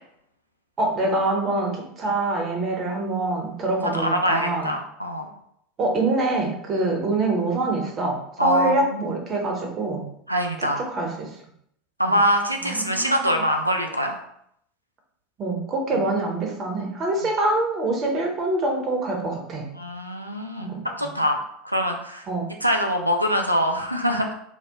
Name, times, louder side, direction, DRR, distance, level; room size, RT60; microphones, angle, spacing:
voice 1, 0.8-4.7 5.8-10.1 10.6-11.3 12.6-13.4 15.4-19.7 20.6-20.8 22.3-22.5, right 2 dB, 30° right, 0 dB, 0.7 m, -25 dB
voice 2, 3.9-5.3 8.4-9.1 10.3-10.8 12.0-14.2 19.7-22.2 22.6-24.3, equal, 90° right, 3 dB, 0.4 m, -24 dB
2.8 x 2.0 x 3.5 m, 0.73 s
figure-of-eight pair, 80°, 0 cm